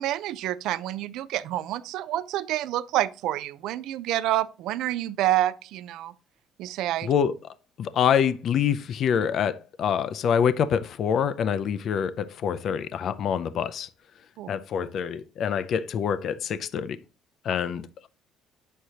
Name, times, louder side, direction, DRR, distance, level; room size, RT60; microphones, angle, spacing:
voice 1, 0.0-6.1 6.6-7.1 14.4-14.5, right 13 dB, 70° right, 0.4 m, -28 dB
voice 2, 7.0-7.3 7.8-13.9 14.5-17.0 17.4-18.1, left 8 dB, 45° left, 0.4 m, -26 dB
9.1 x 6.4 x 2.8 m
cardioid pair, 170°, 0 cm